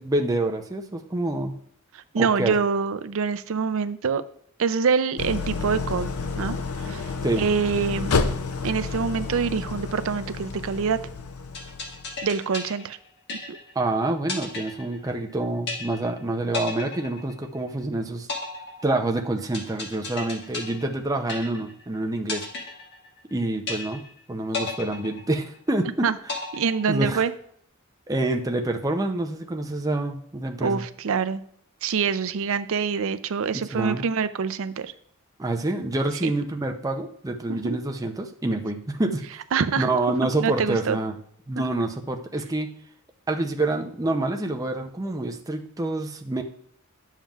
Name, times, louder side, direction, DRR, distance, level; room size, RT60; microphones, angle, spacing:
voice 1, 0.0-1.6 2.2-2.6 7.2-7.5 13.8-18.3 18.8-22.5 23.3-24.0 24.3-26.1 26.9-27.2 28.1-30.8 33.5-34.0 35.4-39.2 39.8-41.2 41.5-42.7 43.3-46.4, right 2 dB, 15° right, 3 dB, 0.6 m, -27 dB
voice 2, 1.9-4.2 4.6-6.1 6.4-8.3 8.6-11.0 12.2-13.0 13.5-13.6 26.0-26.1 26.5-27.3 30.6-31.4 31.8-34.9 36.2-36.3 37.5-37.8 39.5-39.9 40.4-41.0, right 5 dB, 65° right, 12 dB, 0.5 m, -25 dB
Idling, 5.2-12.2, left 4 dB, 75° left, 0.6 m, -30 dB
sound 1, 11.5-13.8 14.3-15.3 15.7-16.2 16.5-17.8 18.3-21.8 22.3-23.3 23.7-24.2 24.5-25.8 26.3-27.3, left 4 dB, 55° left, 1.4 m, -34 dB
10.5 x 7.3 x 2.4 m, 0.65 s
head